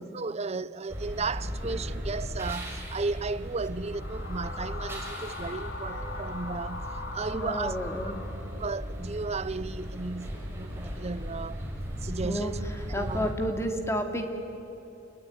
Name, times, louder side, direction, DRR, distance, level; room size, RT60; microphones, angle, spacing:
voice 1, 0.1-7.7 8.6-11.6 12.0-12.6 12.9-13.3, right 4 dB, 35° right, 0.6 m, -34 dB
sound 1, 0.9-13.3, equal, 15° right, 5.8 m, -37 dB
sound 2, 3.7-8.8, left 3 dB, 65° left, 2.6 m, -41 dB
voice 2, 7.3-8.3 12.2-12.5 12.9-14.3, equal, 15° left, 2.6 m, -31 dB
29.0 x 20.5 x 9.4 m
head